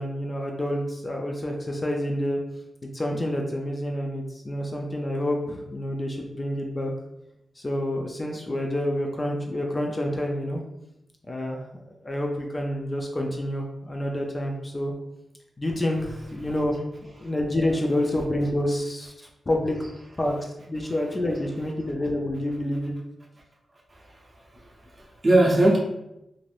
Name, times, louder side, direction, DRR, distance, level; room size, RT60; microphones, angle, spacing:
voice 1, 0.0-2.4 2.9-6.9 7.6-10.6 11.3-11.6 12.0-14.9 15.6-16.8 17.2-19.1 19.5-19.8 20.2-22.9, left 1 dB, 25° left, 1 dB, 0.4 m, -28 dB
voice 2, 23.9-25.8, right 1 dB, 30° right, -4 dB, 0.6 m, -22 dB
2.5 x 2.5 x 3.2 m, 0.88 s
wide cardioid pair, 135°, 0 cm